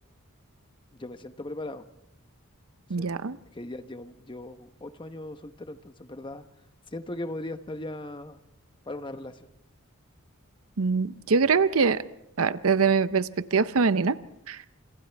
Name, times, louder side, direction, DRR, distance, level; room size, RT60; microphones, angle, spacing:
voice 1, 0.9-1.9 3.0-3.1 3.5-6.4 6.9-8.4 8.8-9.5, left 1 dB, 25° left, 9 dB, 1.0 m, -38 dB
voice 2, 2.9-3.4 10.8-12.0 12.4-14.2 14.5-14.6, right 5 dB, 75° right, 14 dB, 0.7 m, -23 dB
29.0 x 27.5 x 3.5 m, 0.83 s
head